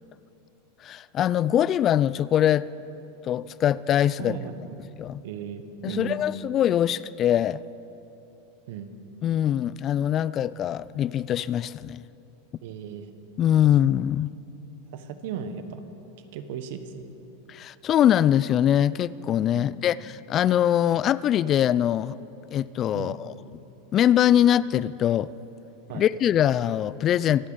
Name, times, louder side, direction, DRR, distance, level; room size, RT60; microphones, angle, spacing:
voice 1, 0.8-2.7 3.2-4.4 5.0-5.2 5.8-7.6 9.2-12.0 13.4-14.3 17.5-22.2 22.5-23.3 23.9-25.3 25.9-27.5, left 11 dB, 35° left, 19 dB, 0.3 m, -23 dB
voice 2, 4.2-4.8 5.2-6.2 8.7-8.9 12.6-13.1 14.9-15.8 16.2-17.0 19.5-19.7 22.9-23.2 25.9-26.0, right 7 dB, 65° right, 9 dB, 1.2 m, -36 dB
25.5 x 8.6 x 5.0 m, 2.9 s
hypercardioid pair, 105°, 0 cm